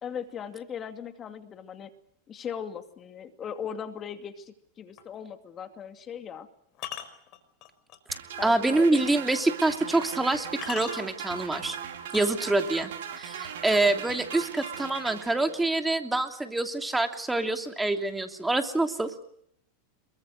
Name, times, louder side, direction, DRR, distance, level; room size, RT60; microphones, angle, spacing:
voice 1, 0.0-1.9 2.3-6.5 8.4-9.1 13.9-14.1, left 8 dB, 35° left, 7 dB, 2.6 m, -38 dB
sound 1, 5.0-5.2 6.7-8.2 8.7-8.8 9.7-9.8 10.3-11.3 12.0-12.8 14.3-15.3 16.2-16.3 16.7-17.1 17.4-18.3, left 11 dB, 50° left, 4.9 m, -42 dB
sound 2, 8.1-15.8, right 8 dB, 70° right, 4.3 m, -39 dB
voice 2, 8.4-11.8 12.1-12.9 13.2-19.1, right 2 dB, 10° right, 6 dB, 2.9 m, -26 dB
27.5 x 23.5 x 6.6 m, 0.68 s
hypercardioid pair, 95°, 0 cm